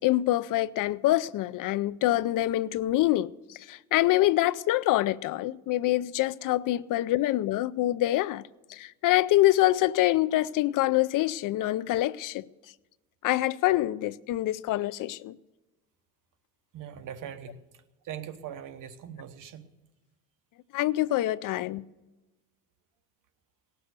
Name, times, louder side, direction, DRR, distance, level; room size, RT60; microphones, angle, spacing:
voice 1, 0.0-8.4 8.7-12.4 13.2-15.4 20.7-21.8, left 15 dB, 80° left, 0.5 m, -25 dB
voice 2, 16.7-17.6 18.0-19.7, right 9 dB, 80° right, 1.1 m, -41 dB
18.0 x 6.9 x 8.0 m
cardioid pair, 150°, 32 cm